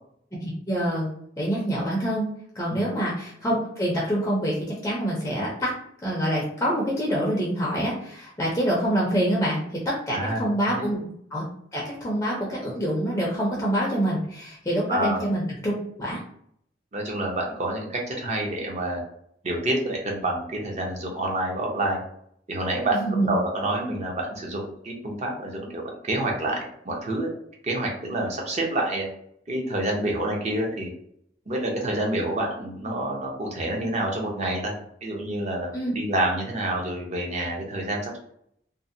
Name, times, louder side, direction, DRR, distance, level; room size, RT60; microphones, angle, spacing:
voice 1, 0.4-1.1 1.4-2.3 2.5-5.7 6.0-11.0 11.3-11.4 11.7-15.7 16.0-16.2 23.0-23.3 35.7-35.9, equal, 15° left, -4 dB, 0.5 m, -26 dB
voice 2, 10.1-10.9 14.9-15.2 16.9-19.0 19.4-22.0 22.5-23.0 23.3-26.6 26.8-27.3 27.6-29.1 29.5-30.9 31.5-34.7 35.0-38.2, right 1 dB, 40° right, -1 dB, 0.6 m, -28 dB
2.6 x 2.0 x 2.5 m, 0.68 s
head